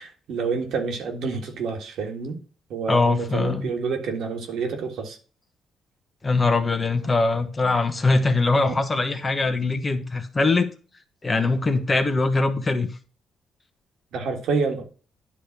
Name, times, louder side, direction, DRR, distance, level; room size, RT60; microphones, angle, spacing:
voice 1, 0.0-2.4 2.7-5.2 9.7-9.8 14.1-14.8, right 4 dB, 75° right, 1.8 m, -28 dB
voice 2, 2.9-3.7 6.2-10.7 11.2-12.9, left 3 dB, 25° left, 1.3 m, -22 dB
10.0 x 3.4 x 5.9 m
cardioid pair, 90°, 0 cm